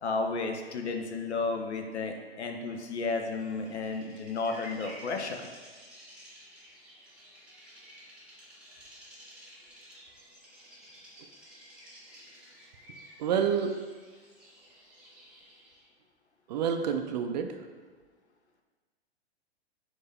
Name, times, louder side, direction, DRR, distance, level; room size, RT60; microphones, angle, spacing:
voice 1, 0.0-5.5, left 3 dB, 80° left, 4 dB, 0.6 m, -33 dB
Bird vocalization bird call bird song, 3.2-15.9, equal, 5° right, 0.8 m, -52 dB
voice 2, 13.2-13.7 16.5-17.6, right 7 dB, 40° right, 6 dB, 0.4 m, -28 dB
4.6 x 2.6 x 3.4 m, 1.4 s
figure-of-eight pair, 110°, 33 cm